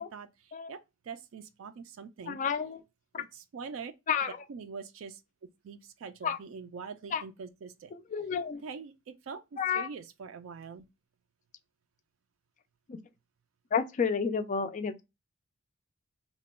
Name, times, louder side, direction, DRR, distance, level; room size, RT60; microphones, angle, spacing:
voice 1, 0.0-2.4 3.2-3.9 4.5-5.2 5.6-8.0 8.6-10.9, right 5 dB, 70° right, 0.4 m, -44 dB
voice 2, 2.3-2.8 3.1-3.2 4.1-4.4 6.2-6.4 7.1-7.2 8.1-8.6 9.6-9.9 12.9-13.0 13.7-15.0, left 6 dB, 40° left, 0.4 m, -30 dB
2.9 x 2.2 x 4.2 m
head